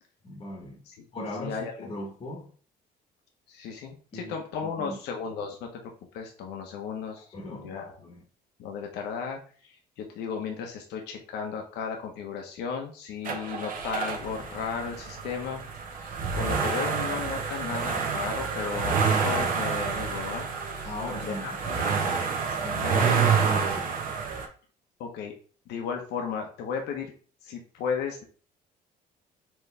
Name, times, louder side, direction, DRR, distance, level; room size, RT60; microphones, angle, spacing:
voice 1, 0.2-0.8 1.1-2.5 4.1-4.3 4.6-5.0 7.3-8.2 20.8-21.6 23.4-23.9, left 1 dB, 30° left, 1.1 m, -38 dB
voice 2, 1.4-1.9 3.5-7.9 8.6-15.6 16.0-20.9 21.2-21.8 22.4-23.2 25.0-25.3 25.7-27.1 27.4-28.2, left 6 dB, 80° left, 0.9 m, -35 dB
sound 1, 13.3-24.5, right 5 dB, 55° right, 1.1 m, -28 dB
4.5 x 3.1 x 3.3 m
cardioid pair, 110°, 17 cm